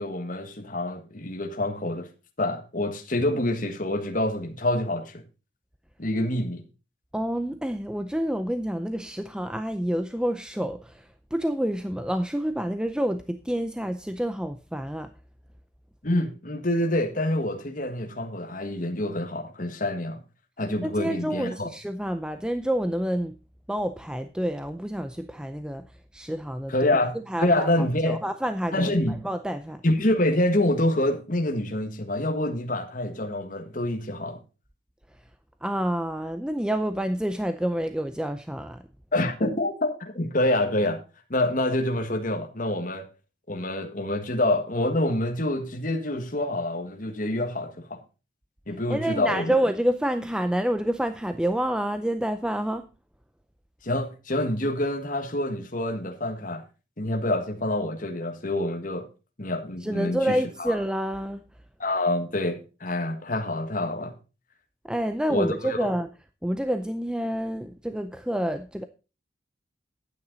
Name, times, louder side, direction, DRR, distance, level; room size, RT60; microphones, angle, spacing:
voice 1, 0.0-2.1 2.4-5.2 6.0-6.6 16.0-20.2 20.6-21.7 26.7-28.2 28.7-29.1 29.8-34.4 39.1-41.0 41.3-43.1 43.5-48.0 48.7-49.5 53.8-56.6 57.0-59.1 59.4-60.8 61.8-64.1 65.3-65.9, left 1 dB, 45° left, 1.5 m, -27 dB
voice 2, 7.1-15.1 20.8-23.3 23.7-25.8 26.1-26.9 27.3-27.7 28.0-29.8 35.6-38.8 48.9-52.9 59.8-61.4 64.8-66.1 66.4-68.9, equal, 5° right, 0.5 m, -28 dB
10.5 x 9.0 x 3.9 m
head